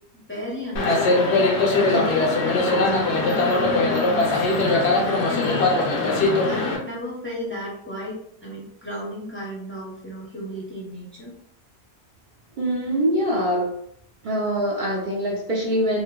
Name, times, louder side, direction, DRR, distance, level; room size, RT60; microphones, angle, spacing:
voice 1, 0.3-1.2 1.8-5.8 6.4-11.3, equal, 15° left, -5 dB, 0.5 m, -34 dB
sound 1, 0.8-6.8, left 2 dB, 80° left, 0.9 m, -20 dB
voice 2, 12.6-13.7 14.2-16.0, right 1 dB, 55° right, -2 dB, 0.7 m, -23 dB
2.7 x 2.5 x 2.2 m, 0.70 s
omnidirectional pair, 1.1 m